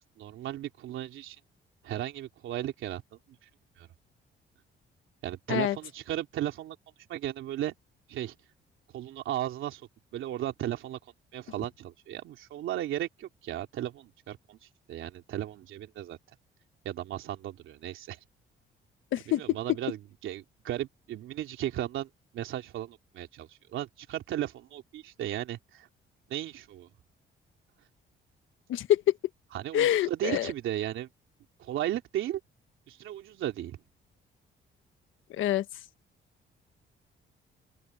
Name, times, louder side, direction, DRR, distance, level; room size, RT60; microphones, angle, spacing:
voice 1, 0.2-1.4 1.8-3.2 3.8-3.9 5.2-6.8 7.1-7.7 8.1-8.3 8.9-11.0 11.3-16.2 16.8-18.2 19.3-25.9 26.3-26.9 29.5-31.1 31.6-32.4 32.9-33.8, right 12 dB, 80° right, 3.2 m, -35 dB
voice 2, 28.7-29.0 29.7-30.5 35.4-35.6, left 12 dB, 80° left, 1.3 m, -26 dB
open air
cardioid pair, 90°, 20 cm